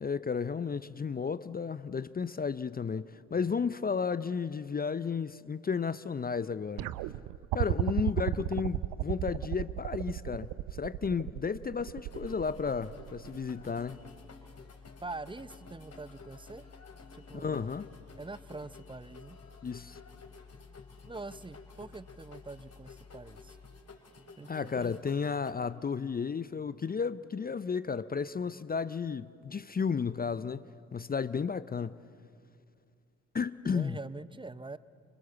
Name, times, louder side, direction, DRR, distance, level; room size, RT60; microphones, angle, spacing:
voice 1, 0.0-6.9 7.5-14.0 17.3-17.8 19.6-20.0 24.5-30.7 30.9-32.0 33.3-34.0, left 5 dB, 25° left, 0.6 m, -33 dB
sound 1, 6.8-13.9 15.1-15.2, right 16 dB, 65° right, 0.7 m, -34 dB
voice 2, 8.0-8.5 15.0-16.6 17.1-17.7 18.2-19.4 21.1-23.6 24.4-24.9 33.7-34.8, right 3 dB, 15° right, 0.7 m, -44 dB
sound 2, 12.1-25.5, left 4 dB, 40° left, 3.7 m, -54 dB
sound 3, 13.7-23.8, left 6 dB, 60° left, 1.7 m, -55 dB
29.0 x 26.5 x 7.1 m
figure-of-eight pair, 40°, 38 cm